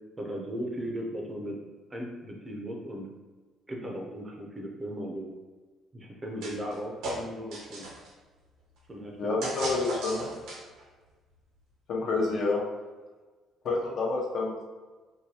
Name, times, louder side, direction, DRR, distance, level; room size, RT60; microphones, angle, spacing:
voice 1, 0.2-1.6 1.9-3.1 3.7-5.3 5.9-7.9 8.9-9.3 12.0-12.4, equal, 20° right, -1 dB, 0.6 m, -37 dB
sound 1, 6.4-6.8 7.0-8.1 9.4-10.8, right 1 dB, 85° right, 0.9 m, -36 dB
voice 2, 9.2-10.2 11.9-12.6 13.6-14.7, left 3 dB, 50° left, -1 dB, 0.7 m, -28 dB
4.6 x 2.2 x 2.8 m, 1.3 s
cardioid pair, 140°, 0 cm